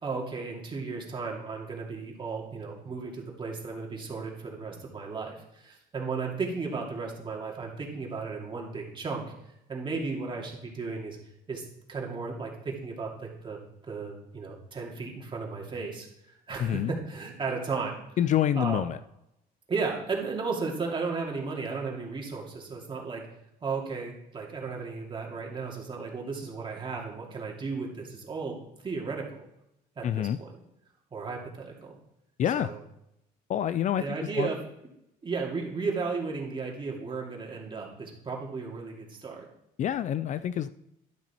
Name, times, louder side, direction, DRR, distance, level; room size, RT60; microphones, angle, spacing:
voice 1, 0.0-9.3 9.7-11.2 11.5-13.6 13.9-18.0 18.6-18.8 19.7-23.3 23.6-28.6 28.8-29.4 30.0-30.5 31.1-32.0 32.5-32.7 34.0-34.6 35.2-39.5, right 4 dB, 30° right, -1 dB, 2.5 m, -34 dB
voice 2, 16.6-16.9 18.2-19.0 30.0-30.4 32.4-32.7 33.5-34.5 39.8-40.7, left 10 dB, 45° left, 14 dB, 0.4 m, -27 dB
12.0 x 6.1 x 4.4 m, 0.83 s
cardioid pair, 110°, 17 cm